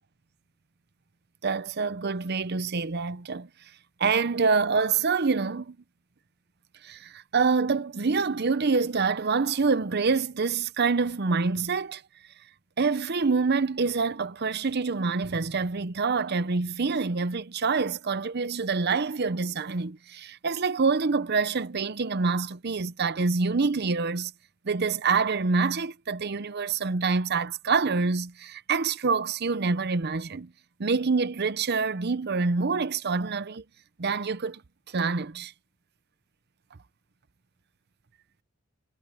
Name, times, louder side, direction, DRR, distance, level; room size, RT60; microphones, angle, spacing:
voice 1, 1.4-3.5 4.0-5.8 6.8-12.0 12.8-24.3 24.6-30.5 30.8-33.6 34.0-34.6 34.9-35.5, right 4 dB, 50° right, 0.7 m, -26 dB
head